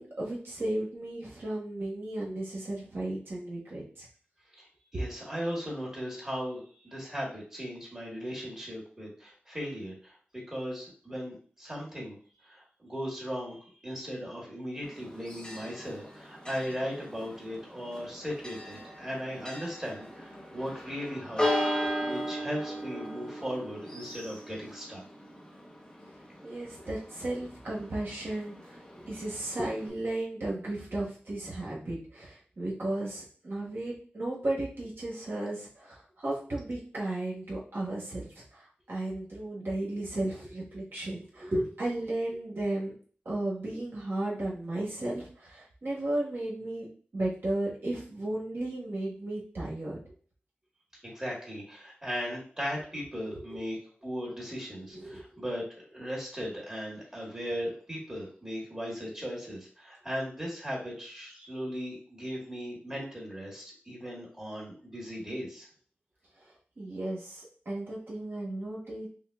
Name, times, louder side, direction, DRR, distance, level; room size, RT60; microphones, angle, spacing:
voice 1, 0.0-4.1 4.9-5.1 26.4-42.9 43.2-46.9 47.1-50.0 53.3-53.4 54.9-55.4 66.4-69.1, right 1 dB, 60° right, -5 dB, 1.3 m, -34 dB
voice 2, 4.6-10.2 10.5-21.7 22.0-25.0 51.0-65.7, equal, 15° right, -4 dB, 1.4 m, -37 dB
Church bell, 14.8-29.9, equal, 20° left, 0.7 m, -37 dB
5.6 x 2.1 x 2.3 m, 0.43 s
wide cardioid pair, 95°, 4 cm